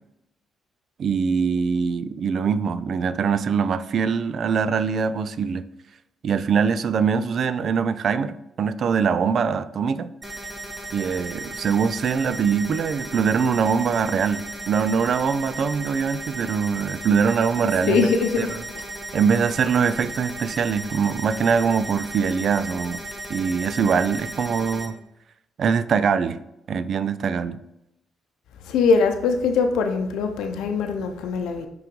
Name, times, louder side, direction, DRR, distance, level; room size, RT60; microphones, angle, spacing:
voice 1, 1.0-5.6 6.2-10.1 10.9-18.1 18.4-18.6 19.1-23.0 23.3-25.0 25.6-26.4 26.7-27.6, right 6 dB, 55° right, 14 dB, 0.4 m, -23 dB
sound 1, 10.2-24.9, right 2 dB, 20° right, 1.6 m, -36 dB
voice 2, 17.9-18.5 28.7-31.7, left 5 dB, 85° left, 5 dB, 0.6 m, -22 dB
5.6 x 3.9 x 5.3 m, 0.84 s
cardioid pair, 90°, 0 cm